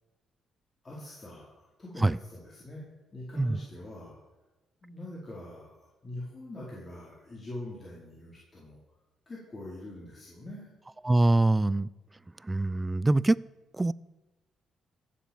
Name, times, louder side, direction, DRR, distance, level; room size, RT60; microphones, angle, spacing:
voice 1, 0.8-2.8 3.1-4.2 4.8-8.8 9.3-10.7, left 1 dB, 30° left, -6 dB, 4.4 m, -43 dB
voice 2, 11.0-11.9 12.4-13.4 13.7-13.9, right 2 dB, 15° right, 21 dB, 0.4 m, -24 dB
15.5 x 7.4 x 7.1 m, 1.1 s
cardioid pair, 90°, 0 cm